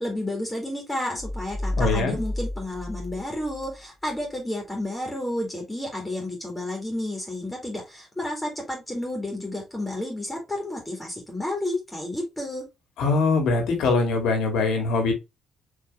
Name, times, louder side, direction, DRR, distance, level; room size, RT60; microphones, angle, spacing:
voice 1, 0.0-12.6, left 1 dB, 10° left, 0 dB, 2.0 m, -31 dB
sound 1, 1.2-3.8, left 1 dB, 30° left, 0.8 m, -31 dB
voice 2, 1.8-2.2 13.0-15.1, left 3 dB, 80° left, 4 dB, 2.1 m, -22 dB
4.7 x 3.4 x 3.1 m, 0.24 s
cardioid pair, 90°, 0 cm